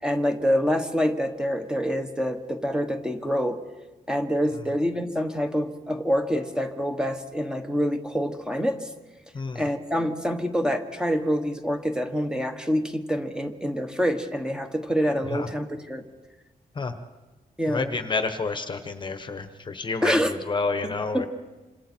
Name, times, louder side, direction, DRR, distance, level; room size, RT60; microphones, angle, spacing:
voice 1, 0.0-3.6 4.1-8.9 9.5-16.0 17.6-17.9 20.0-20.3 20.8-21.3, equal, 5° right, 5 dB, 1.3 m, -26 dB
voice 2, 17.7-21.3, left 4 dB, 30° left, 8 dB, 1.2 m, -30 dB
27.5 x 26.5 x 4.5 m, 1.2 s
wide cardioid pair, 155°, 15 cm